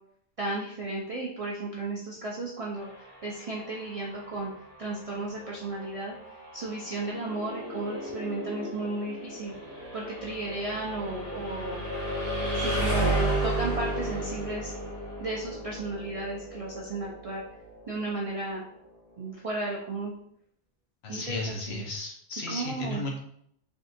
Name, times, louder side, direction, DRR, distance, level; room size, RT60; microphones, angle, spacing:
voice 1, 0.4-2.9 3.2-4.5 4.8-6.1 6.5-9.5 9.9-11.8 12.6-14.7 15.2-17.4 17.9-18.6 19.2-20.1 21.1-21.8 22.5-23.0, right 2 dB, 55° right, -3 dB, 0.4 m, -34 dB
sound 1, 2.7-18.6, right 1 dB, 40° left, 1.6 m, -34 dB
sound 2, 6.9-10.6, equal, 80° right, 1.0 m, -40 dB
voice 2, 21.0-23.2, left 2 dB, 65° left, -1 dB, 1.0 m, -34 dB
3.6 x 2.4 x 2.6 m, 0.69 s
omnidirectional pair, 1.2 m